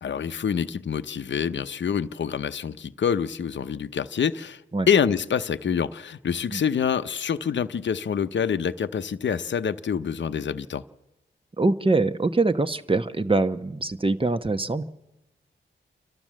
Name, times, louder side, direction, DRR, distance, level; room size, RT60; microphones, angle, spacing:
voice 1, 0.0-4.6 4.9-10.8, left 7 dB, 65° left, 0.7 m, -26 dB
voice 2, 11.6-14.8, right 3 dB, 25° right, 1.0 m, -23 dB
29.5 x 12.5 x 7.5 m
cardioid pair, 55°, 20 cm